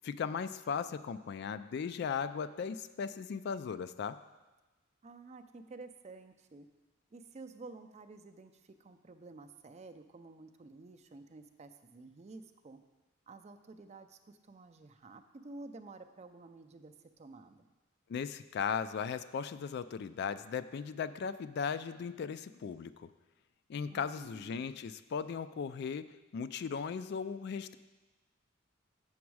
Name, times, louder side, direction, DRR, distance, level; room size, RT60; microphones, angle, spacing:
voice 1, 0.0-4.2 18.1-23.1 23.7-26.1 26.3-27.8, left 6 dB, 55° left, 13 dB, 0.3 m, -37 dB
voice 2, 5.0-6.7 7.1-12.8 13.3-17.6 23.9-24.7, right 3 dB, 35° right, 8 dB, 0.4 m, -51 dB
7.2 x 7.0 x 4.7 m, 1.2 s
head